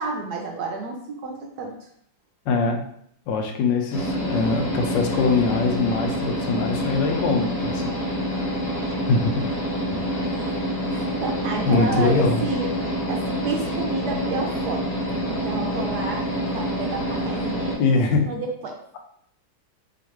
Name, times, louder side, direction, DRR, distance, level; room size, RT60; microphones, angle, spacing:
voice 1, 0.0-1.7 10.9-12.7 13.1-14.9 15.2-18.8, right 4 dB, 70° right, 1 dB, 1.0 m, -30 dB
voice 2, 2.5-2.8 3.3-7.9 9.1-9.4 9.9-10.0 11.6-12.4 17.8-18.3, left 4 dB, 75° left, 4 dB, 1.3 m, -22 dB
sound 1, 3.9-17.7, equal, 50° left, 1.8 m, -27 dB
4.8 x 2.9 x 2.9 m, 0.67 s
omnidirectional pair, 2.1 m